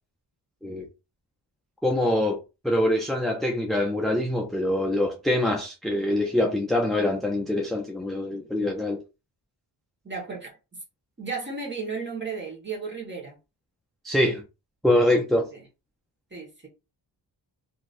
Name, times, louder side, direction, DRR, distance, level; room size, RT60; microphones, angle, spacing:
voice 1, 1.8-2.4 2.6-9.0 14.0-14.4 14.8-15.4, left 1 dB, ahead, 0.4 m, -24 dB
voice 2, 10.0-10.5 11.2-13.4 15.5-15.6 16.3-16.7, right 4 dB, 25° right, 1.3 m, -34 dB
3.0 x 2.7 x 2.5 m
wide cardioid pair, 120°, 45 cm